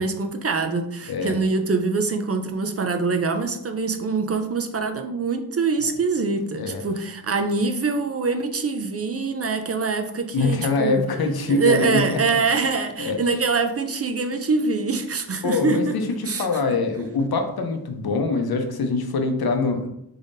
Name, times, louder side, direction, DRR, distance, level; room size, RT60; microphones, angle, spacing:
voice 1, 0.0-11.0 11.5-15.9 16.3-16.5, right 4 dB, 40° right, 7 dB, 0.5 m, -24 dB
voice 2, 10.3-12.2 13.0-13.2 15.4-15.9 16.2-19.9, left 3 dB, 70° left, 5 dB, 0.7 m, -24 dB
3.8 x 3.5 x 2.6 m, 0.79 s
cardioid pair, 50°, 39 cm